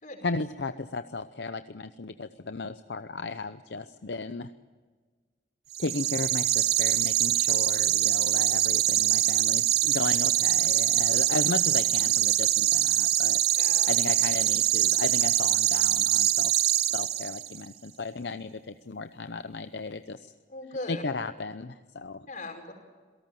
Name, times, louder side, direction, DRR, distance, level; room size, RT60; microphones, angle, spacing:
voice 1, 0.2-4.5 5.8-13.4 13.7-16.5 16.9-20.3 20.9-22.3, left 3 dB, 70° left, 10 dB, 0.8 m, -35 dB
sound 1, 5.7-17.6, right 12 dB, 60° right, 0.9 m, -24 dB
voice 2, 13.6-13.9 20.5-21.0 22.3-22.7, left 2 dB, 45° left, 4 dB, 5.1 m, -38 dB
27.0 x 18.5 x 7.7 m, 1.5 s
head